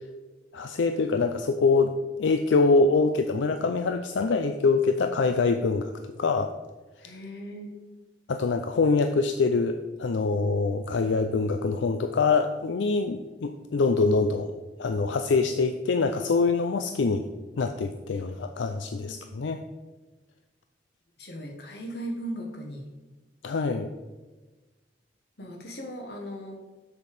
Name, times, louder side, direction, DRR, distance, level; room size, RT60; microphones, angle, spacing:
voice 1, 0.5-1.9 2.2-5.9 6.2-6.5 8.3-14.5 14.8-17.3 17.6-19.6 23.4-23.9, left 4 dB, 85° left, 7 dB, 0.4 m, -24 dB
voice 2, 7.0-7.7 18.9-19.2 21.2-22.8 25.4-26.6, equal, 60° left, 1 dB, 1.6 m, -38 dB
7.1 x 6.6 x 5.0 m, 1.2 s
head